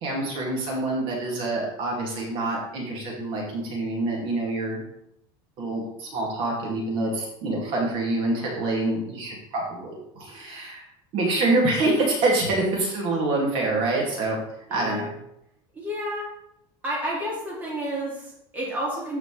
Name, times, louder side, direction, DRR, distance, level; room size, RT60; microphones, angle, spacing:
voice 1, 0.0-4.8 5.6-10.8 11.1-14.4 14.7-15.1, right 2 dB, 50° right, -2 dB, 2.4 m, -26 dB
voice 2, 14.7-15.1 15.7-16.3 16.8-19.2, equal, 15° right, -5 dB, 2.3 m, -31 dB
13.0 x 5.0 x 3.3 m, 0.80 s
cardioid pair, 165°, 12 cm